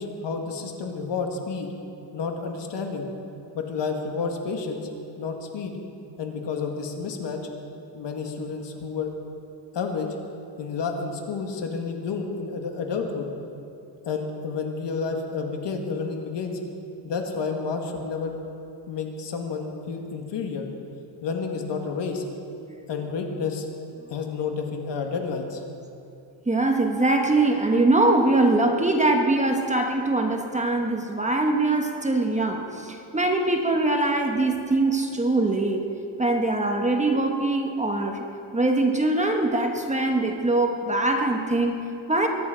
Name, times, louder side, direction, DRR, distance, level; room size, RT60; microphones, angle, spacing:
voice 1, 0.0-1.7 2.1-3.1 3.5-4.9 5.2-5.8 6.2-7.4 7.9-9.1 9.7-10.1 10.6-13.3 14.0-16.6 17.0-18.4 18.9-20.7 21.2-22.2 22.9-23.7 24.1-25.6, left 5 dB, 60° left, 3 dB, 2.0 m, -30 dB
voice 2, 26.5-35.8 36.2-38.2 38.5-42.3, right 2 dB, 15° right, 2 dB, 1.2 m, -22 dB
22.5 x 11.0 x 5.1 m, 2.7 s
cardioid pair, 135°, 48 cm